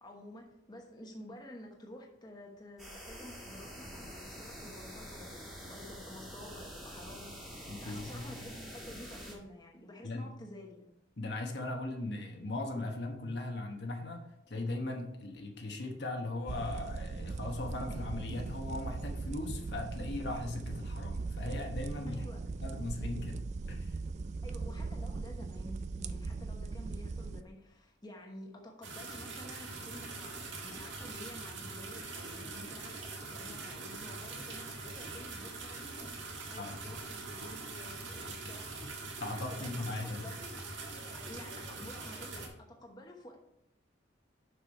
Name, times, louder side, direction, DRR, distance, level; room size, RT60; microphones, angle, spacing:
voice 1, 0.0-7.3 7.6-10.9 22.1-22.4 24.4-40.5 41.1-43.4, left 1 dB, 20° left, 0 dB, 1.1 m, -51 dB
sound 1, 2.8-9.3, equal, ahead, 1.8 m, -46 dB
voice 2, 7.7-8.3 10.0-10.3 11.2-22.3 22.6-24.0 36.6-36.9 39.2-40.2, left 2 dB, 60° left, 2 dB, 1.1 m, -39 dB
sound 2, 16.5-27.4, right 3 dB, 35° right, 0.3 m, -39 dB
sound 3, 28.8-42.5, right 3 dB, 75° right, 1.7 m, -43 dB
6.6 x 5.9 x 4.5 m, 0.79 s
head